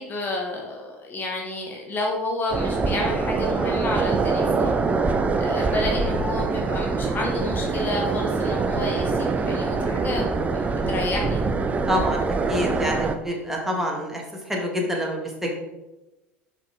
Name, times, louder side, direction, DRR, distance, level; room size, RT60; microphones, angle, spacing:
voice 1, 0.0-10.3 10.5-11.4, left 2 dB, 30° left, 0 dB, 1.2 m, -30 dB
sound 1, 2.5-13.1, right 4 dB, 20° right, 0.6 m, -24 dB
voice 2, 11.9-12.2 12.5-14.2 14.5-15.5, equal, 5° right, 0 dB, 1.9 m, -26 dB
6.2 x 5.7 x 3.8 m, 1.0 s
hypercardioid pair, 75°, 6 cm